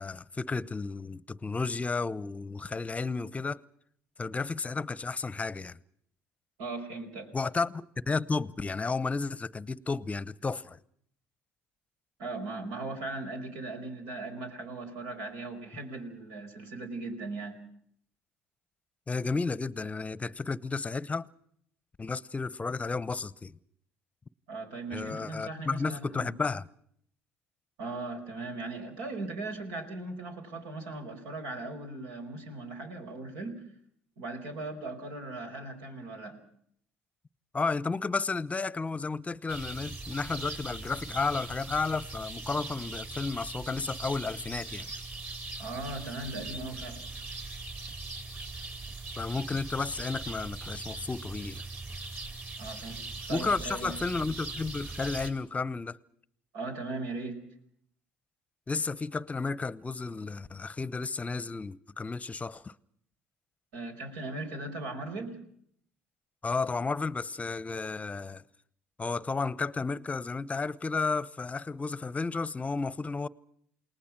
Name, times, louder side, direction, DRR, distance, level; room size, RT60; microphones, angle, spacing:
voice 1, 0.0-3.6 4.2-5.8 7.3-10.8 19.1-21.3 22.0-23.6 24.9-26.6 37.5-44.9 49.2-51.6 53.3-56.0 58.7-62.7 66.4-68.4 69.0-73.3, left 4 dB, 20° left, 0.9 m, -32 dB
voice 2, 6.6-7.3 12.2-17.6 24.5-26.3 27.8-33.7 34.2-36.4 45.6-47.0 52.6-53.0 53.3-54.0 56.5-57.4 63.7-65.4, right 2 dB, 70° right, 5.0 m, -38 dB
sound 1, 39.5-55.3, right 3 dB, 35° right, 4.9 m, -40 dB
29.0 x 19.5 x 6.1 m
hypercardioid pair, 65°, 6 cm